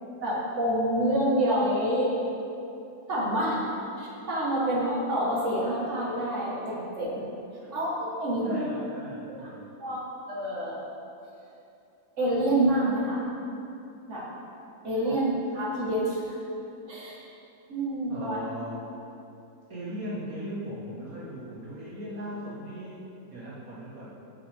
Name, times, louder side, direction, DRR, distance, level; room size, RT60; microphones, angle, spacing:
voice 1, 0.2-2.1 3.1-3.6 4.0-7.2 7.7-8.7 9.3-9.5 9.8-10.0 10.3-10.8 12.2-13.2 14.1-14.2 14.8-16.4 16.9-17.2 17.7-18.4, right 1 dB, 50° right, -6 dB, 2.1 m, -27 dB
voice 2, 8.4-9.7 15.0-15.2 18.1-18.8 19.7-24.1, equal, 70° right, -8 dB, 2.0 m, -38 dB
16.0 x 5.4 x 3.7 m, 2.8 s
omnidirectional pair, 1.6 m